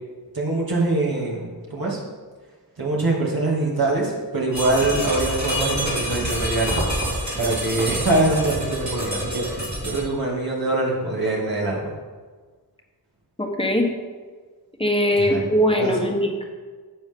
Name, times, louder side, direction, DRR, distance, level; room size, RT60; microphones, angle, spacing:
voice 1, 0.3-2.0 2.8-6.9 7.4-11.9 15.2-15.5 15.8-16.1, right 2 dB, 60° right, -5 dB, 2.6 m, -24 dB
sound 1, 4.5-10.0, equal, 45° right, 2.8 m, -27 dB
voice 2, 13.4-13.9 14.8-16.4, equal, 15° left, 1 dB, 1.3 m, -21 dB
10.0 x 7.2 x 3.8 m, 1.5 s
wide cardioid pair, 60°, 40 cm